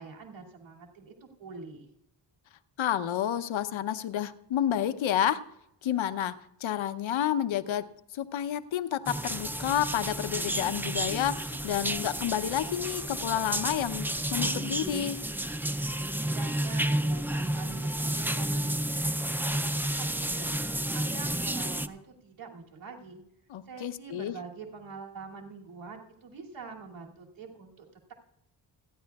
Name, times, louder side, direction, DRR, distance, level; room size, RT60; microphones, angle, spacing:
voice 1, 0.0-1.9 16.3-19.1 19.4-19.7 20.1-20.6 20.9-23.2 23.7-28.1, right 4 dB, 70° right, -1 dB, 2.7 m, -45 dB
voice 2, 2.8-5.4 5.8-15.2 23.5-24.3, left 10 dB, 85° left, 11 dB, 0.8 m, -30 dB
sound 1, 9.1-21.9, right 1 dB, 5° right, 0.4 m, -31 dB
28.5 x 10.5 x 2.4 m, 0.81 s
wide cardioid pair, 120°, 46 cm